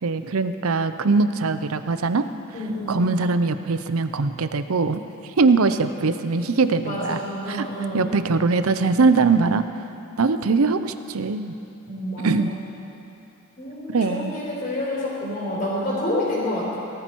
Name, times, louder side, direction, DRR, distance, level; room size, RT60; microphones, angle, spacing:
voice 1, 0.0-2.3 2.9-5.0 5.4-7.2 7.5-7.7 7.9-9.6 10.2-11.5 12.2-12.5 13.9-14.3, right 4 dB, 75° right, 11 dB, 0.6 m, -21 dB
voice 2, 2.5-3.0 6.3-8.1 11.9-12.6 13.6-16.8, left 1 dB, 40° left, -7 dB, 3.9 m, -28 dB
18.5 x 13.5 x 4.6 m, 2.8 s
head